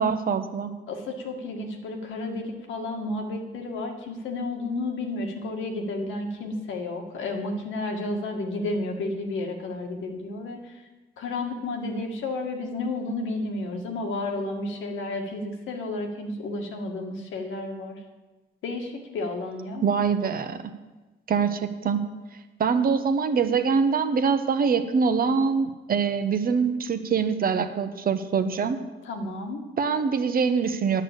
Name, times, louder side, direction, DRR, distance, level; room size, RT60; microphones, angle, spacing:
voice 1, 0.0-0.7 19.8-20.6 21.3-22.0 22.6-28.8 29.8-31.0, right 5 dB, 50° right, 9 dB, 0.9 m, -24 dB
voice 2, 0.9-10.7 11.2-18.0 18.6-19.8 29.1-29.6, left 2 dB, 80° left, 2 dB, 1.8 m, -32 dB
9.8 x 6.3 x 8.3 m, 1.2 s
cardioid pair, 90°, 20 cm